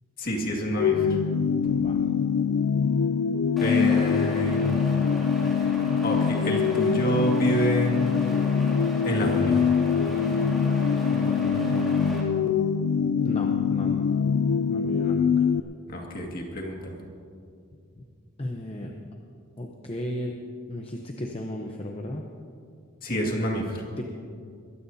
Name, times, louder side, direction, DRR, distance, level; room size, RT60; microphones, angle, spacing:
voice 1, 0.2-1.2 1.6-2.0 3.6-4.6 6.0-7.9 9.0-9.6 15.9-17.0 23.0-23.8, equal, 40° left, 0 dB, 2.0 m, -28 dB
sound 1, 0.8-15.6, left 6 dB, 70° left, 0.4 m, -24 dB
voice 2, 1.7-2.0 11.1-12.5 13.2-14.0 14.7-15.5 18.4-18.9 19.6-20.4 20.7-22.2 23.1-23.5 24.0-24.1, left 1 dB, 25° left, 1 dB, 0.8 m, -35 dB
sound 2, 3.6-12.2, left 1 dB, ahead, 2.6 m, -36 dB
22.0 x 16.0 x 2.8 m, 2.3 s
head